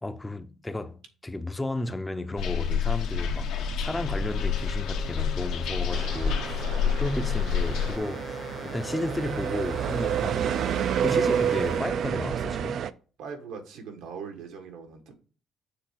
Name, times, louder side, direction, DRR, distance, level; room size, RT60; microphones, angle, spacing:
voice 1, 0.0-6.6 7.0-10.8 11.0-12.9, left 2 dB, 10° left, 0.5 m, -33 dB
sound 1, 2.4-8.0, left 6 dB, 80° left, 1.1 m, -28 dB
sound 2, 4.1-11.8, left 6 dB, 40° left, 0.8 m, -43 dB
sound 3, 5.9-12.9, right 9 dB, 60° right, 0.4 m, -29 dB
voice 2, 6.2-7.4 13.2-15.1, right 6 dB, 85° right, 1.5 m, -42 dB
6.7 x 3.3 x 5.8 m
cardioid pair, 110°, 0 cm